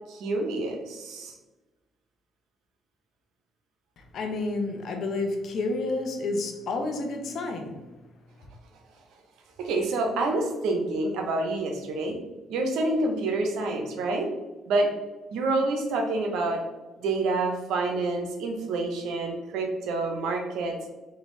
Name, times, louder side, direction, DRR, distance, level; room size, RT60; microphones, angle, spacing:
voice 1, 0.1-1.3 9.6-12.2 12.5-14.3 14.7-14.9 15.3-16.6 17.0-20.8, right 2 dB, 80° right, 3 dB, 0.8 m, -27 dB
voice 2, 4.0-7.7, left 2 dB, 65° left, 4 dB, 0.8 m, -30 dB
3.8 x 3.4 x 3.1 m, 1.1 s
cardioid pair, 85°, 0 cm